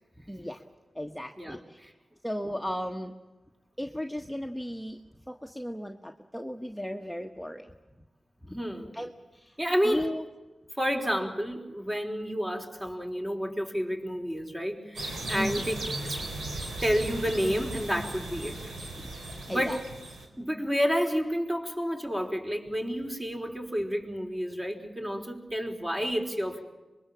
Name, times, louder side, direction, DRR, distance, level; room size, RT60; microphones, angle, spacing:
voice 1, 0.3-0.6 0.9-1.8 2.2-3.1 3.8-5.0 5.3-7.7 8.5-8.6 8.9-9.6 9.8-10.2 15.3-15.6 19.0-19.1 19.5-19.8, equal, ahead, 4 dB, 1.5 m, -35 dB
voice 2, 1.4-1.9 8.5-8.9 9.6-10.1 10.8-15.7 16.0-16.3 16.8-18.6 19.5-19.9 20.4-26.6, equal, 20° right, 2 dB, 4.7 m, -30 dB
sound 1, 15.0-20.3, right 2 dB, 80° right, 4.1 m, -37 dB
25.0 x 22.0 x 7.5 m, 1.2 s
cardioid pair, 45°, 0 cm